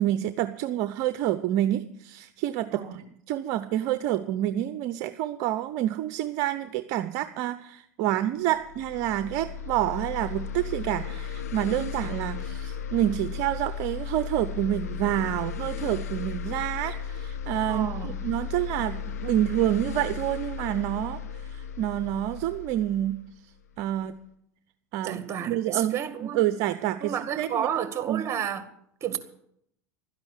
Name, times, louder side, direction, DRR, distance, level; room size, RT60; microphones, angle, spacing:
voice 1, 0.0-23.2 23.8-24.2 24.9-27.7 28.1-28.2, right 13 dB, 55° right, 0.7 m, -28 dB
sound 1, 8.5-24.0, left 7 dB, 90° left, 0.8 m, -35 dB
voice 2, 17.7-18.2 25.0-26.4 27.0-28.6 29.0-29.2, right 8 dB, 35° right, 1.9 m, -31 dB
12.5 x 10.5 x 8.2 m
hypercardioid pair, 95°, 8 cm